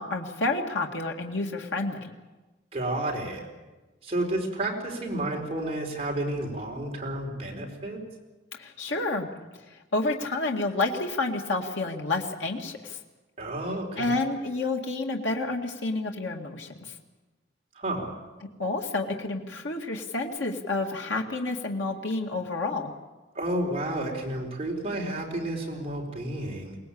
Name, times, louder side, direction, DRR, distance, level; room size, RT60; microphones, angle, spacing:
voice 1, 0.0-2.1 8.5-9.3 9.7-13.0 14.0-16.7 18.4-22.9, left 2 dB, 75° left, 1 dB, 2.1 m, -29 dB
voice 2, 2.7-3.4 4.0-8.0 13.4-14.2 17.8-18.2 23.3-26.8, right 1 dB, 30° right, -1 dB, 4.5 m, -31 dB
23.0 x 19.0 x 8.7 m, 1.2 s
head